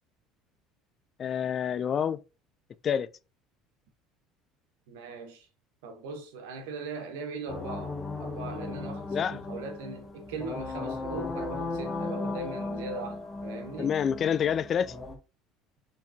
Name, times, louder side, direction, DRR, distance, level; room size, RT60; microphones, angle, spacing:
voice 1, 1.2-2.2 2.8-3.1 9.1-9.4 13.8-14.9, left 8 dB, 40° left, 0.4 m, -27 dB
voice 2, 4.9-5.5 5.8-13.9, right 3 dB, 85° right, 1.0 m, -39 dB
sound 1, 7.5-15.2, left 3 dB, 20° left, 1.0 m, -36 dB
4.5 x 3.5 x 2.7 m
supercardioid pair, 110°, 0 cm